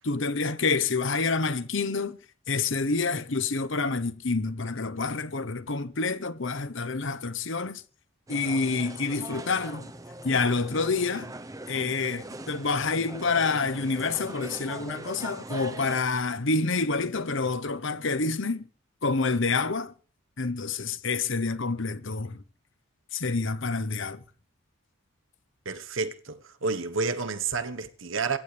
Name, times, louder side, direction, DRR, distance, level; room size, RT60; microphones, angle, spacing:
voice 1, 0.0-2.2 2.5-7.8 8.3-9.9 10.2-11.3 11.7-18.6 19.0-19.9 20.4-22.4 23.1-24.2, left 4 dB, 60° left, 1.0 m, -28 dB
sound 1, 8.3-16.0, right 2 dB, 15° right, 0.9 m, -41 dB
voice 2, 25.6-28.4, right 4 dB, 60° right, 1.3 m, -30 dB
24.5 x 15.0 x 3.4 m
head